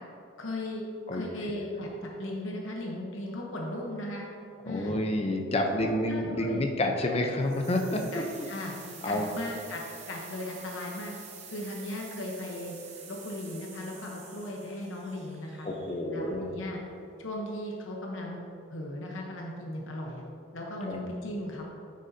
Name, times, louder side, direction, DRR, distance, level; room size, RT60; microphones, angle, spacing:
voice 1, 0.4-0.8 1.1-4.3 4.6-5.0 5.7-6.6 8.1-8.8 9.0-11.1 11.5-12.8 13.1-15.7 16.1-16.8 17.2-18.4 18.7-20.2 20.5-21.6, left 1 dB, 70° left, -1 dB, 1.0 m, -37 dB
voice 2, 4.7-8.2 9.0-9.3 15.6-16.5 20.8-21.0, left 1 dB, 30° left, 3 dB, 0.6 m, -29 dB
sound 1, 7.4-16.3, right 6 dB, 35° right, 0.8 m, -48 dB
9.3 x 6.4 x 2.7 m, 2.6 s
head